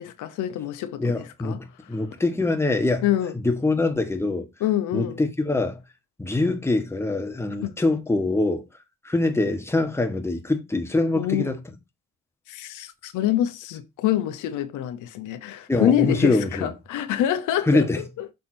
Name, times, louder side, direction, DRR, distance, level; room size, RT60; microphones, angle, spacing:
voice 1, 0.0-2.0 3.0-3.3 4.6-5.2 7.6-7.7 11.2-11.5 12.5-18.3, left 11 dB, 90° left, 0.8 m, -26 dB
voice 2, 1.0-3.0 3.4-4.5 4.9-5.8 6.2-8.6 9.0-11.6 15.7-16.7 17.7-18.0, left 2 dB, 10° left, 1.3 m, -24 dB
6.4 x 3.5 x 4.3 m
cardioid pair, 90°, 30 cm